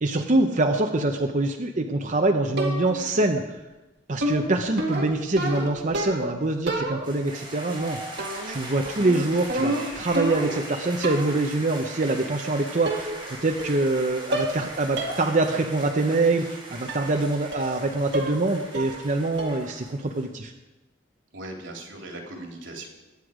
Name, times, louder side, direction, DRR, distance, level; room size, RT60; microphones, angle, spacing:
voice 1, 0.0-3.4 4.1-8.0 8.5-13.1 13.4-20.5, right 2 dB, 40° right, 4 dB, 0.8 m, -24 dB
sound 1, 2.6-3.1 4.2-6.4 6.7-7.3 8.2-8.6 8.9-10.7 11.0-11.4 12.3-12.4 12.9-13.3 13.6-14.0 14.3-14.6 15.0-15.2 15.6-15.7 16.9-17.1 17.5-17.8 18.1-18.5 18.7-19.1 19.4-19.7, right 1 dB, 60° right, 2.1 m, -30 dB
sound 2, 7.0-20.3, right 1 dB, 25° right, 4.3 m, -40 dB
voice 2, 21.3-22.9, right 2 dB, 85° right, 2 dB, 2.8 m, -38 dB
21.0 x 8.1 x 5.0 m, 1.1 s
head